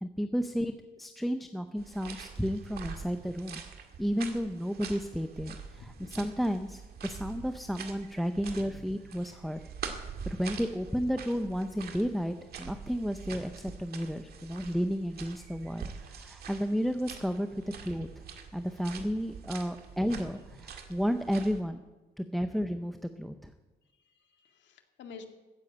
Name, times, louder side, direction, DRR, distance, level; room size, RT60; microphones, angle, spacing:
voice 1, 0.0-9.6 10.3-18.1 18.5-21.8 22.2-23.5, equal, ahead, 8 dB, 0.5 m, -32 dB
sound 1, 1.8-21.6, right 6 dB, 60° right, 1.9 m, -45 dB
voice 2, 5.7-6.2 8.6-8.8 13.3-13.4 19.9-20.2 23.9-25.2, left 5 dB, 80° left, 6 dB, 2.1 m, -50 dB
15.0 x 10.0 x 8.5 m, 1.2 s
cardioid pair, 170°, 18 cm